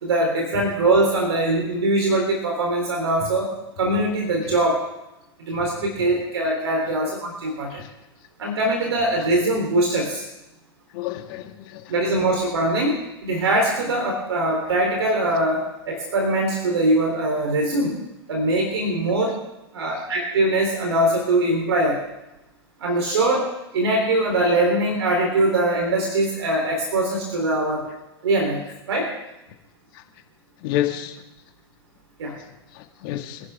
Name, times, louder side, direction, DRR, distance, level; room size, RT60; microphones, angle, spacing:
voice 1, 0.0-3.5 3.8-4.8 5.5-7.8 8.4-10.2 11.9-13.0 13.2-18.0 18.3-19.4 19.7-22.0 22.8-23.5 23.7-27.9 28.2-29.1 32.2-32.4, right 1 dB, 75° right, 0 dB, 3.7 m, -22 dB
voice 2, 10.9-11.8 30.6-31.1 32.8-33.4, left 13 dB, 55° left, 4 dB, 2.3 m, -28 dB
26.0 x 11.0 x 3.7 m, 0.94 s
hypercardioid pair, 100°, 14 cm